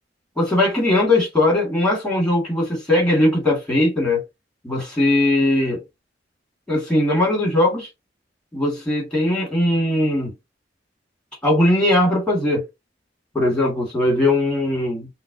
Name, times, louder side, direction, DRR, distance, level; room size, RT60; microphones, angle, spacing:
voice 1, 0.4-4.2 4.6-5.8 6.7-7.9 8.5-10.3 11.4-12.6 13.3-15.1, left 1 dB, 5° left, 1.8 m, -19 dB
5.6 x 2.1 x 2.7 m
head